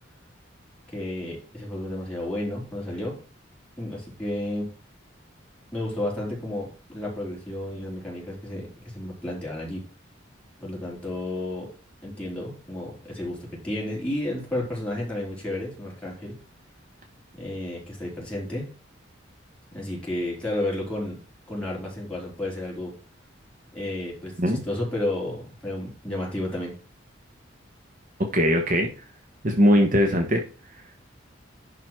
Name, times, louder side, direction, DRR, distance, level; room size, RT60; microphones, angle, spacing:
voice 1, 0.9-3.1 3.8-4.7 5.7-8.7 8.9-9.8 10.6-11.7 12.0-16.3 17.4-18.7 19.7-21.2 21.5-22.9 23.7-26.7, left 1 dB, 5° left, -5 dB, 4.0 m, -32 dB
voice 2, 28.2-28.9 29.4-30.4, equal, 45° right, 3 dB, 1.1 m, -20 dB
11.0 x 4.0 x 4.5 m, 0.36 s
head